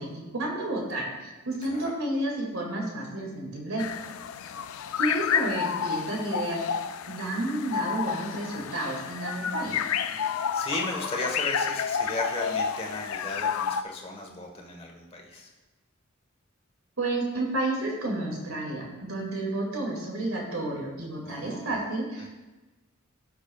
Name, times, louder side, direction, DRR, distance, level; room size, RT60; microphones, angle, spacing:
voice 1, 0.0-3.8 5.0-6.6 7.1-9.8 17.0-22.3, right 2 dB, 90° right, -1 dB, 2.3 m, -31 dB
sound 1, 3.8-13.8, left 7 dB, 80° left, 0.4 m, -30 dB
voice 2, 10.1-15.5 21.2-21.8 22.2-22.3, left 2 dB, 30° left, 0 dB, 1.3 m, -35 dB
15.5 x 6.1 x 2.4 m, 1.2 s
head